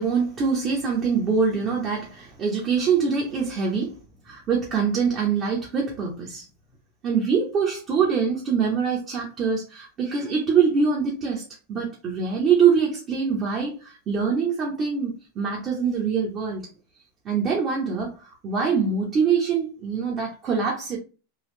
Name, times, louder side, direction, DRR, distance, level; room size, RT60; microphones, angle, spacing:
voice 1, 0.0-4.0 4.2-6.4 7.0-11.4 11.7-16.7 17.2-21.0, right 6 dB, 35° right, 1.2 m, -24 dB
3.9 x 2.4 x 3.2 m
hypercardioid pair, 110°, 0 cm